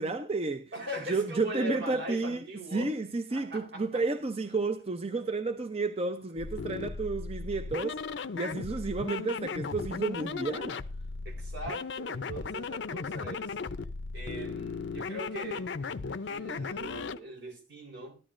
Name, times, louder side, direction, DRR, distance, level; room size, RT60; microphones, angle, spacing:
voice 1, 0.0-0.7 1.1-2.5 2.7-10.8, right 3 dB, 35° right, 0.6 m, -31 dB
voice 2, 0.7-2.9 3.3-4.0 11.2-13.6 14.1-18.2, equal, 80° right, 3.9 m, -41 dB
sound 1, 6.4-17.2, left 4 dB, 75° left, 0.6 m, -36 dB
14.0 x 11.5 x 2.5 m
head